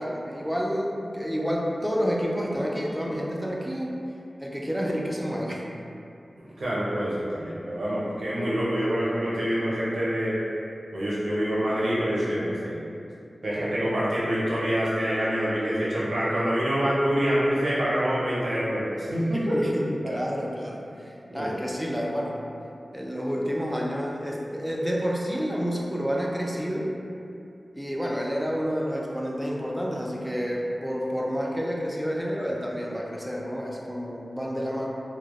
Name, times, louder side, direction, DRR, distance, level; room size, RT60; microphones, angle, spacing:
voice 1, 0.0-3.9 4.4-5.6 19.3-22.4 22.9-26.9 27.7-34.9, equal, 5° right, -3 dB, 0.3 m, -29 dB
voice 2, 6.4-10.4 10.9-12.8 13.4-19.6 20.0-20.2 21.3-21.5, equal, 85° right, -8 dB, 0.5 m, -26 dB
2.2 x 2.0 x 2.8 m, 2.6 s
wide cardioid pair, 85°, 0 cm